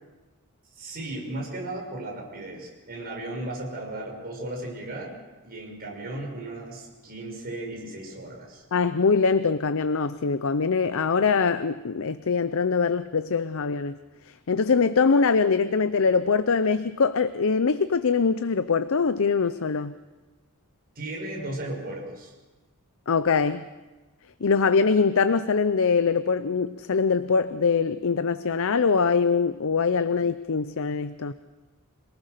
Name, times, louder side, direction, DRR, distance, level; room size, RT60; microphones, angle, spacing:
voice 1, 0.8-5.1 5.4-8.6 20.9-22.3, right 1 dB, 45° right, -1 dB, 6.2 m, -35 dB
voice 2, 8.7-14.0 14.5-19.9 23.1-23.6 24.4-31.3, left 5 dB, 65° left, 12 dB, 0.6 m, -23 dB
26.5 x 19.0 x 6.7 m, 1.2 s
head